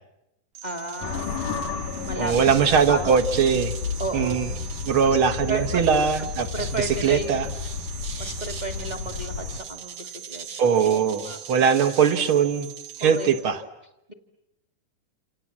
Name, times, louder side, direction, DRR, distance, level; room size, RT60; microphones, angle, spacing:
voice 1, 0.6-1.7 1.9-2.3 2.9-3.1 4.0-4.5 5.0-5.2 5.5-5.8 6.5-7.5 8.2-11.4 13.0-13.3, right 2 dB, 15° right, 5 dB, 1.5 m, -33 dB
sound 1, 0.6-13.4, right 8 dB, 80° right, 4.2 m, -40 dB
sound 2, 1.0-9.6, left 6 dB, 90° left, 3.6 m, -32 dB
voice 2, 2.2-3.7 4.1-4.5 4.9-7.5 10.6-12.7 13.0-13.6, right 7 dB, 50° right, 9 dB, 1.9 m, -21 dB
28.0 x 27.5 x 7.5 m, 0.87 s
omnidirectional pair, 3.6 m